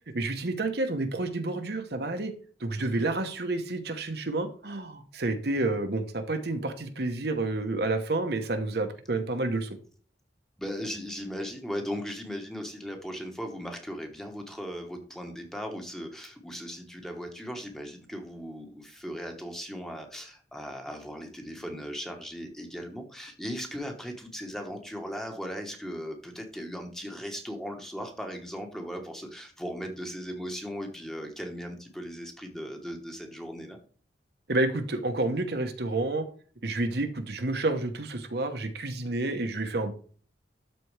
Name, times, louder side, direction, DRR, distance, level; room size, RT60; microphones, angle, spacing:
voice 1, 0.1-2.3 2.6-9.7 34.5-36.3 36.6-39.9, right 2 dB, 55° right, 6 dB, 1.0 m, -29 dB
voice 2, 10.6-33.8, equal, ahead, 3 dB, 1.1 m, -38 dB
12.5 x 4.2 x 3.3 m, 0.42 s
head